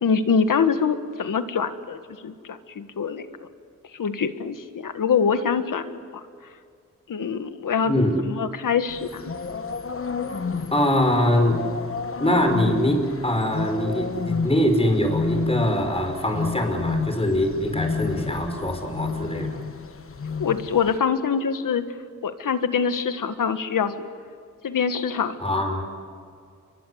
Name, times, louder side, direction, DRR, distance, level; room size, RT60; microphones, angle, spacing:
voice 1, 0.0-3.5 3.9-6.0 7.1-7.9 8.3-9.3 20.4-21.9 22.2-24.1 24.6-25.4, left 6 dB, 90° left, 9 dB, 1.7 m, -24 dB
voice 2, 7.8-8.2 10.7-11.6 12.2-19.5 25.4-25.8, left 1 dB, 20° left, 5 dB, 5.6 m, -23 dB
sound 1, 8.9-21.0, left 4 dB, 45° left, 1.2 m, -31 dB
29.5 x 23.5 x 8.2 m, 2.2 s
wide cardioid pair, 90°, 31 cm